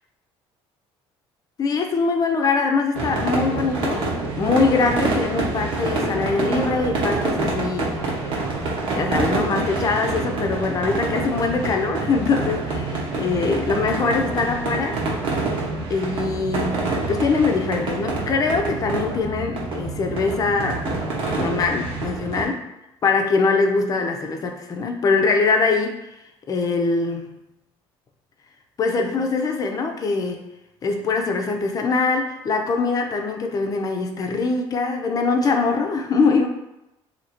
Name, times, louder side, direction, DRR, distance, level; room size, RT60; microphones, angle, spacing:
voice 1, 1.6-4.1 4.4-8.0 8.9-15.0 15.9-21.0 21.4-22.6 23.0-26.0 26.5-27.4 28.8-30.4 30.8-36.5, left 4 dB, 35° left, 4 dB, 0.5 m, -22 dB
sound 1, 2.9-22.4, right 3 dB, 55° right, 1.1 m, -26 dB
2.8 x 2.8 x 4.3 m, 0.89 s
cardioid pair, 125°, 11 cm